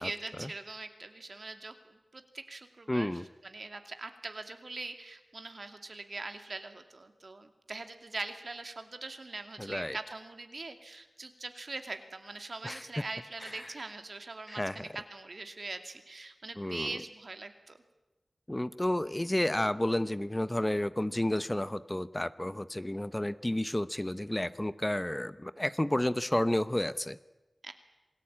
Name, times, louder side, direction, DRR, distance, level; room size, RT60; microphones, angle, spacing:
voice 1, 0.0-17.8 27.6-27.7, right 3 dB, 65° right, 7 dB, 2.4 m, -42 dB
voice 2, 2.9-3.2 9.6-10.0 12.6-12.8 14.5-14.8 16.6-16.9 18.5-27.2, left 1 dB, 20° left, 14 dB, 0.7 m, -31 dB
27.0 x 18.5 x 8.7 m, 1.1 s
wide cardioid pair, 55°, 0 cm